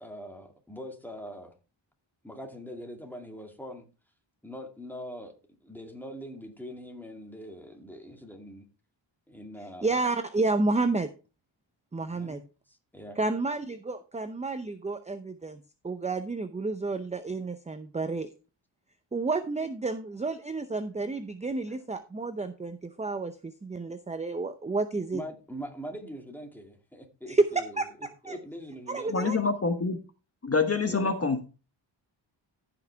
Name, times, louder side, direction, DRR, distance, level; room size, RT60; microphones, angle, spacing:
voice 1, 0.0-1.5 2.2-3.9 4.4-5.3 5.6-8.7 9.3-9.9 12.1-12.4 12.7-13.2 25.1-27.8 28.2-29.3 30.9-31.1, equal, 5° left, 2.2 m, -42 dB
voice 2, 9.8-11.1 11.9-12.4 13.2-18.3 19.1-25.2 27.3-28.4 28.9-29.4, right 3 dB, 15° right, 0.6 m, -30 dB
voice 3, 29.1-30.0 30.4-31.4, left 4 dB, 30° left, 1.2 m, -26 dB
14.5 x 6.0 x 3.4 m
wide cardioid pair, 120°, 47 cm